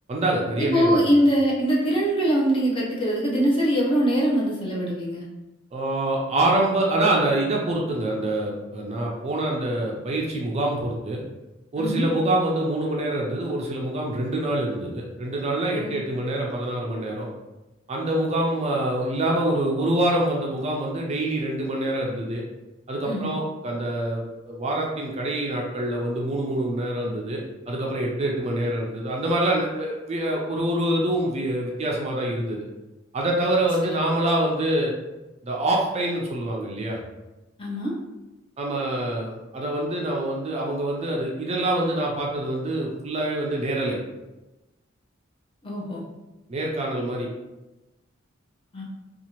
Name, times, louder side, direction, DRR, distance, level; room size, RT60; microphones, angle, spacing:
voice 1, 0.1-1.1 5.7-11.2 11.7-17.3 17.9-22.4 22.9-27.4 27.7-32.7 33.1-34.9 35.4-37.0 38.6-44.0 46.5-47.3, right 1 dB, 35° right, -1 dB, 0.4 m, -25 dB
voice 2, 0.6-5.2 11.8-12.1 15.7-15.9 23.0-23.3 33.8-34.1 37.6-37.9 45.6-46.0 48.7-48.8, equal, 25° left, -5 dB, 0.7 m, -23 dB
2.8 x 2.3 x 2.9 m, 1.0 s
head